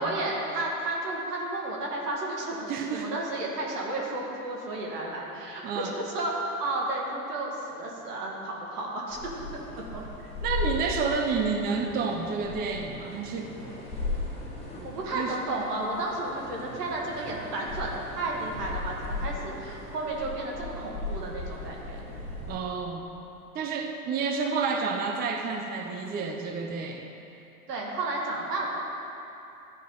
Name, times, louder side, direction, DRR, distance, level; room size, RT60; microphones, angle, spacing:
voice 1, 0.0-9.4 9.8-10.0 14.8-22.0 27.7-28.7, right 2 dB, 85° right, -2 dB, 1.9 m, -32 dB
voice 2, 2.7-3.1 5.6-5.9 10.4-13.6 15.1-15.3 22.5-23.1 23.5-27.1, right 5 dB, 20° right, 3 dB, 0.5 m, -30 dB
sound 1, 9.1-22.6, left 2 dB, 15° left, 1.9 m, -37 dB
12.5 x 5.0 x 3.8 m, 2.9 s
hypercardioid pair, 110°, 46 cm